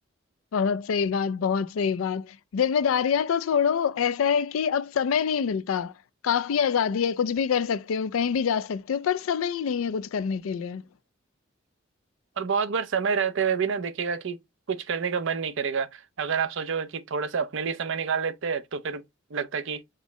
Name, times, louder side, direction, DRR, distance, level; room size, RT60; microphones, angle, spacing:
voice 1, 0.5-5.9 6.2-10.8, left 7 dB, 85° left, 0.4 m, -25 dB
voice 2, 12.4-14.4 14.7-19.0 19.3-19.8, right 6 dB, 65° right, 0.5 m, -28 dB
5.2 x 2.1 x 3.8 m
head